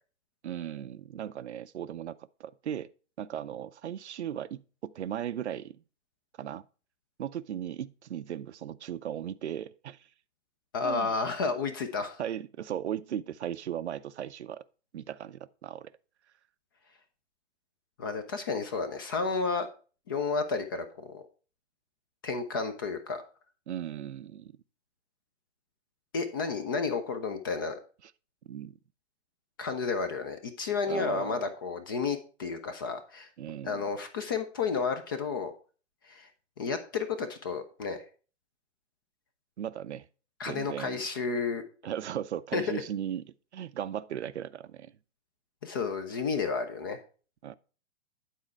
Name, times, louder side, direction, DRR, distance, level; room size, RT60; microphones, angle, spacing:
voice 1, 0.4-2.9 3.2-5.8 6.4-6.6 7.2-10.1 10.8-11.1 12.2-14.6 14.9-15.9 23.7-24.6 28.4-28.8 30.9-31.4 33.4-33.8 39.6-40.1 40.5-41.0 41.8-43.3 43.5-44.9 47.4-47.5, right 10 dB, 65° right, 0.5 m, -37 dB
voice 2, 10.7-12.2 18.0-19.7 20.1-21.2 22.2-23.2 26.1-27.8 29.6-33.3 33.6-35.5 36.1-36.3 36.6-38.0 40.4-41.6 42.5-42.6 45.6-47.0, left 4 dB, 20° left, 0.3 m, -31 dB
9.2 x 4.3 x 4.5 m
figure-of-eight pair, 115°, 36 cm